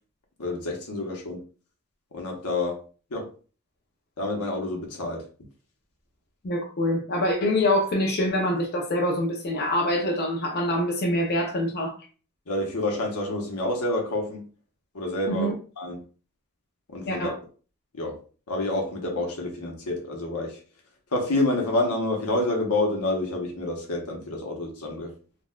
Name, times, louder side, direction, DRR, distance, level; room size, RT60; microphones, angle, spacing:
voice 1, 0.4-1.4 2.1-2.8 3.1-3.3 4.2-5.3 12.5-14.4 14.9-15.5 15.8-16.0 16.9-17.3 17.9-18.2 18.5-20.6 21.1-25.1, left 2 dB, 85° left, 0.9 m, -28 dB
voice 2, 6.4-12.0 15.3-15.5 17.1-17.3, left 1 dB, 45° left, 0.5 m, -25 dB
3.9 x 2.2 x 2.2 m
head